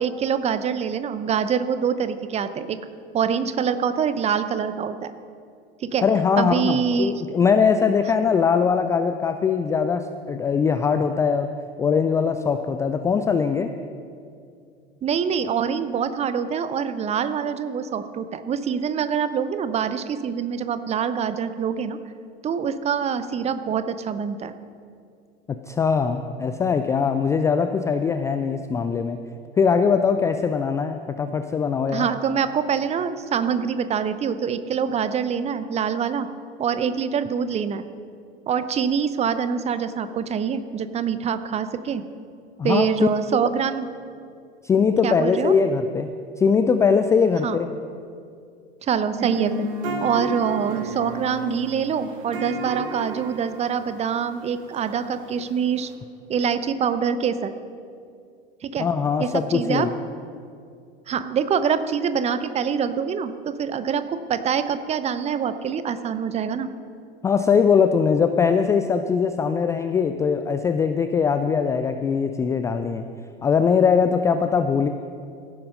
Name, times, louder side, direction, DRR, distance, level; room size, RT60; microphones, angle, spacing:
voice 1, 0.0-2.8 3.1-5.1 5.8-6.0 6.4-7.3 15.0-22.0 22.4-24.5 31.9-36.3 36.6-37.9 38.5-42.0 42.6-43.9 45.0-45.5 47.4-47.6 48.8-49.7 50.0-55.9 56.3-57.5 58.6-58.9 59.2-59.9 61.1-66.7, right 7 dB, 20° right, 12 dB, 0.6 m, -25 dB
voice 2, 6.0-11.5 11.8-13.7 25.5-29.2 29.6-32.0 42.6-42.9 44.6-47.7 58.8-59.9 67.2-73.0 73.4-74.9, left 6 dB, 10° left, 8 dB, 0.3 m, -21 dB
sound 1, 49.2-55.9, right 2 dB, 55° right, 2.1 m, -33 dB
16.5 x 9.9 x 5.3 m, 2.4 s
figure-of-eight pair, 80°, 31 cm